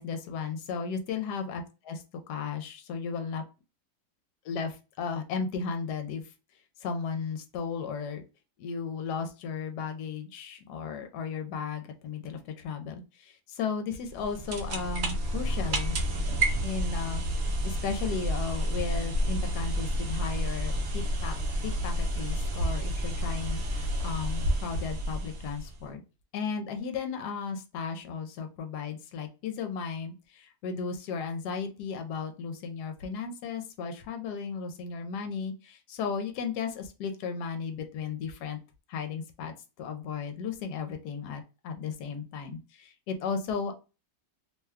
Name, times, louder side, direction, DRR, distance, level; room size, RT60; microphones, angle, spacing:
voice 1, 0.0-3.4 4.4-6.3 6.8-8.2 8.6-16.0 16.6-17.2 17.6-21.4 21.6-26.0 26.3-38.6 38.9-43.7, left 5 dB, 75° left, 5 dB, 1.2 m, -35 dB
sound 1, 14.0-25.8, equal, 70° right, 0.6 m, -30 dB
3.0 x 2.2 x 3.4 m, 0.30 s
omnidirectional pair, 1.9 m